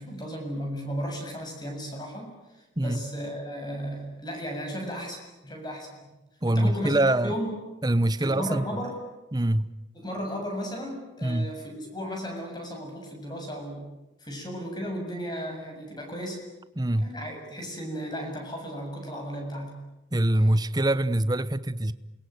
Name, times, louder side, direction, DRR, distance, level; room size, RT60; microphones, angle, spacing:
voice 1, 0.0-6.1 6.5-7.5 8.2-9.0 9.9-13.9 14.2-16.4 17.0-19.8, equal, 20° left, 7.3 m, -35 dB
voice 2, 6.4-7.3 7.8-8.6 9.3-9.7 11.2-11.5 16.8-17.1 20.1-21.9, right 1 dB, 20° right, 0.9 m, -24 dB
28.0 x 22.5 x 9.5 m
head